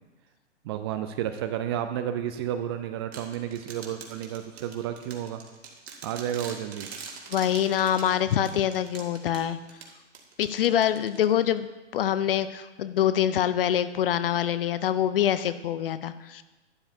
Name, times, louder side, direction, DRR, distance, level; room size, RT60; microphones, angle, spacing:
voice 1, 0.6-5.4 6.0-6.9, right 10 dB, 25° right, 9 dB, 0.4 m, -31 dB
sound 1, 3.1-11.6, right 5 dB, 60° right, 2.3 m, -44 dB
voice 2, 7.3-9.6 10.4-11.7 11.9-16.4, left 10 dB, 50° left, 13 dB, 0.7 m, -25 dB
12.0 x 12.0 x 2.8 m, 1.1 s
figure-of-eight pair, 115°, 35 cm